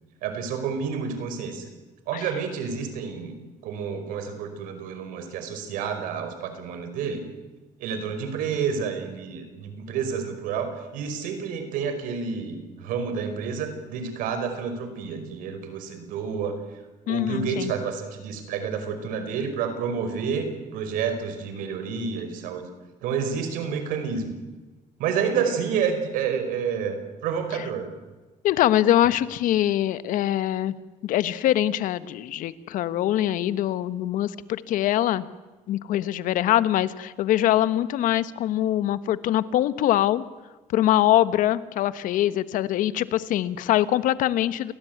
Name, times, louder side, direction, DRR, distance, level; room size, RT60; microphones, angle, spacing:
voice 1, 0.2-1.6 2.1-3.3 3.6-7.2 7.8-16.6 17.1-22.6 23.0-24.4 25.0-27.9, right 6 dB, 90° right, 8 dB, 5.2 m, -29 dB
voice 2, 17.1-17.7 28.4-30.7 31.0-35.2 35.7-40.2 40.7-44.7, left 13 dB, 75° left, 15 dB, 1.3 m, -23 dB
29.0 x 19.0 x 9.4 m, 1.2 s
cardioid pair, 115°, 14 cm